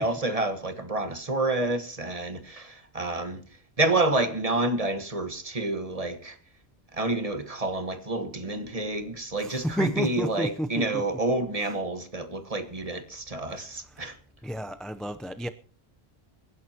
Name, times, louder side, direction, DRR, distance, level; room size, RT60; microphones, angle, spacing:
voice 1, 0.0-3.4 3.8-6.4 6.9-14.1, right 2 dB, 35° right, 1.5 m, -29 dB
voice 2, 9.4-11.1 11.6-11.7 13.6-14.1 14.4-15.5, equal, ahead, 0.5 m, -32 dB
25.5 x 11.0 x 2.9 m
omnidirectional pair, 1.1 m